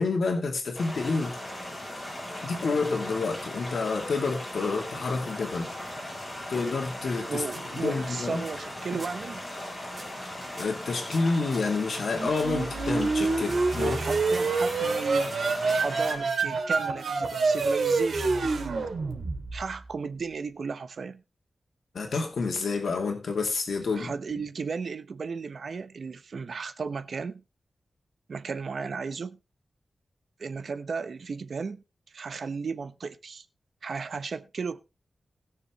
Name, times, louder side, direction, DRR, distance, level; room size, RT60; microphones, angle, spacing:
voice 1, 0.0-1.4 2.4-5.7 6.5-7.4 7.7-8.4 10.6-14.0 21.9-24.1, left 4 dB, 75° left, 2.4 m, -28 dB
sound 1, 0.7-16.2, left 1 dB, 20° left, 7.9 m, -38 dB
sound 2, 6.6-7.2 7.5-8.1 8.4-8.7 9.0-9.3 9.9-10.2 10.6-12.6 13.2-14.6 15.3-16.1, right 1 dB, 20° right, 3.8 m, -48 dB
voice 2, 7.3-9.4 13.7-15.3 15.7-18.8 19.5-21.2 23.9-27.4 28.3-29.4 30.4-31.8 32.1-33.5 33.8-34.8, right 5 dB, 65° right, 0.8 m, -35 dB
sound 3, 12.1-19.8, right 3 dB, 90° right, 2.5 m, -27 dB
20.0 x 6.8 x 3.1 m
wide cardioid pair, 145°, 0 cm